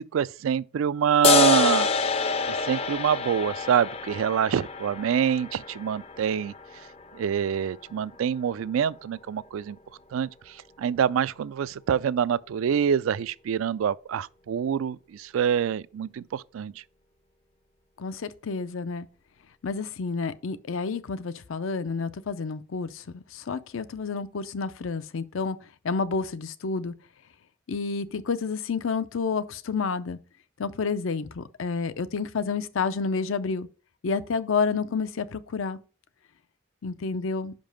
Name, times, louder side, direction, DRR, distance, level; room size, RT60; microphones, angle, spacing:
voice 1, 0.0-1.9 2.5-6.5 7.1-9.8 10.1-10.3 10.8-16.7, right 8 dB, 90° right, 0.3 m, -26 dB
sound 1, 1.2-8.2, left 4 dB, 30° left, 0.4 m, -27 dB
voice 2, 18.0-19.1 19.6-25.6 25.8-26.9 27.7-30.2 30.6-33.7 34.0-35.8 36.8-37.5, left 4 dB, 85° left, 0.5 m, -29 dB
5.6 x 5.2 x 5.1 m
head